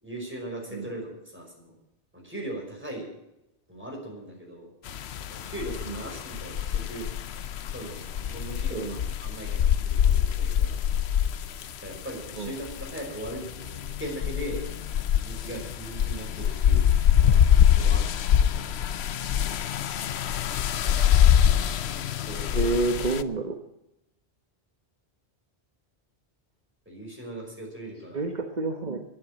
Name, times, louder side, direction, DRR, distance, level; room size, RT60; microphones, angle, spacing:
voice 1, 0.0-1.8 2.1-3.1 3.7-4.7 5.3-7.1 7.7-10.8 11.8-14.6 15.2-18.8 22.2-22.8 26.9-28.2, right 1 dB, 10° right, -1 dB, 5.4 m, -39 dB
sound 1, 4.9-23.2, left 9 dB, 80° left, 1.0 m, -24 dB
voice 2, 22.5-23.5 28.1-29.0, right 3 dB, 45° right, 5 dB, 1.3 m, -28 dB
12.0 x 11.0 x 9.0 m, 0.88 s
omnidirectional pair, 1.1 m